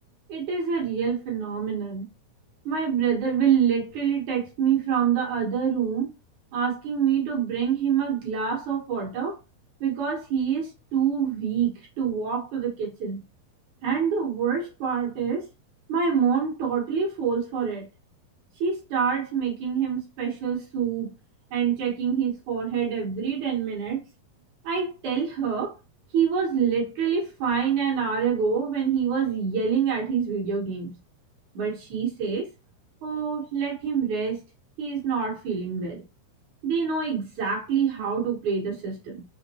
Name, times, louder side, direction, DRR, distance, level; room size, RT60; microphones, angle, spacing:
voice 1, 0.3-2.1 2.7-6.1 6.5-9.4 9.8-13.2 13.8-15.5 15.9-17.9 18.6-21.1 21.5-24.0 24.6-25.8 26.1-31.0 31.5-32.5 33.0-34.4 34.8-36.0 36.6-39.2, right 7 dB, 65° right, 2.2 m, -26 dB
5.9 x 2.5 x 2.9 m
omnidirectional pair, 4.4 m